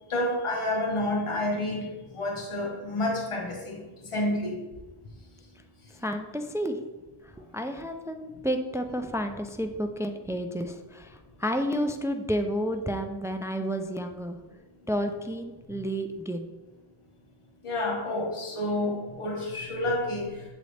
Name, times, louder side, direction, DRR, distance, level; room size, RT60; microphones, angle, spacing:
voice 1, 0.1-1.9 2.1-3.8 4.1-4.6 17.6-20.3, left 1 dB, 80° left, 0 dB, 1.4 m, -29 dB
voice 2, 5.9-6.8 7.2-14.4 14.9-16.5, equal, 5° right, 6 dB, 0.4 m, -31 dB
7.5 x 4.0 x 3.3 m, 1.2 s
wide cardioid pair, 45°, 49 cm